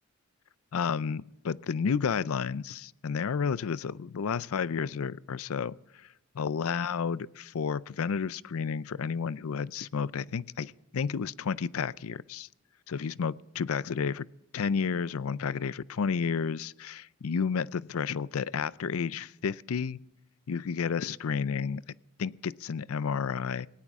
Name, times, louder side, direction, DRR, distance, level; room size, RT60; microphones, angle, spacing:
voice 1, 0.7-5.7 6.4-12.5 12.9-14.3 14.5-20.0 20.5-21.8 22.2-23.7, left 6 dB, 80° left, 19 dB, 0.4 m, -31 dB
19.0 x 17.5 x 3.6 m, 0.88 s
head